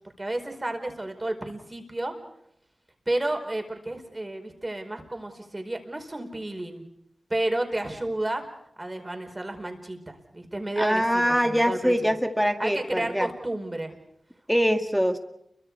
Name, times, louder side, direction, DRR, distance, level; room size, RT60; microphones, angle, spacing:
voice 1, 0.2-2.1 3.1-6.8 7.3-8.5 8.8-12.0 12.6-13.9, right 1 dB, 30° right, 5 dB, 4.8 m, -31 dB
voice 2, 10.8-13.3 14.5-15.2, equal, ahead, 6 dB, 2.0 m, -23 dB
29.5 x 23.5 x 4.8 m, 0.75 s
cardioid pair, 55°, 0 cm